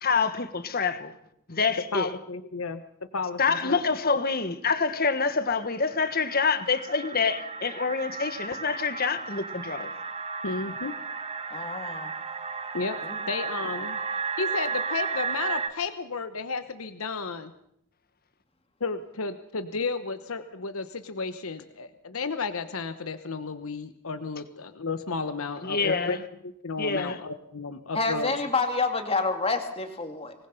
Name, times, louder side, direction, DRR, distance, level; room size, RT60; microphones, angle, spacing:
voice 1, 0.0-1.1 1.5-2.1 3.4-9.9 25.6-26.2 26.8-27.2, left 4 dB, 45° left, 1.4 m, -26 dB
voice 2, 1.9-2.8 3.1-3.8 10.4-10.9 12.7-13.0 13.3-14.0 14.4-17.5 18.8-26.2 26.4-28.3, left 4 dB, 80° left, 1.1 m, -33 dB
sound 1, 5.6-15.7, right 5 dB, 30° right, 1.3 m, -34 dB
voice 3, 11.5-12.1 13.0-13.2 27.9-30.3, left 3 dB, 30° left, 2.4 m, -28 dB
25.5 x 19.5 x 5.7 m
head